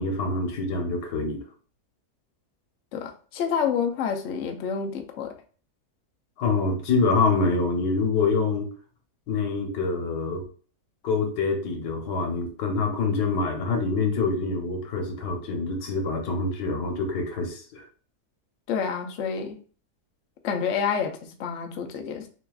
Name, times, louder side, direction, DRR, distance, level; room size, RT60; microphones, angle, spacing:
voice 1, 0.0-1.4 6.4-8.7 9.3-10.4 11.0-17.8, left 4 dB, 90° left, 3 dB, 1.5 m, -26 dB
voice 2, 2.9-5.3 18.7-19.6 20.4-22.3, left 6 dB, 60° left, 5 dB, 0.8 m, -28 dB
6.6 x 2.4 x 2.3 m, 0.40 s
omnidirectional pair, 1.7 m